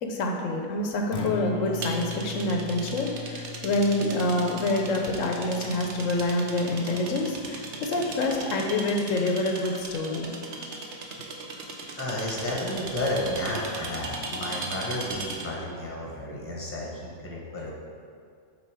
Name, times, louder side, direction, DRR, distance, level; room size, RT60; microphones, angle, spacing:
voice 1, 0.0-10.4, left 2 dB, 90° left, 2 dB, 1.1 m, -27 dB
Acoustic guitar, 1.1-9.2, left 6 dB, 55° left, 0.5 m, -40 dB
sound 1, 1.8-15.6, right 3 dB, 65° right, 1.0 m, -38 dB
voice 2, 12.0-17.8, left 1 dB, 10° left, -3 dB, 1.1 m, -32 dB
7.2 x 3.8 x 4.8 m, 2.2 s
omnidirectional pair, 1.3 m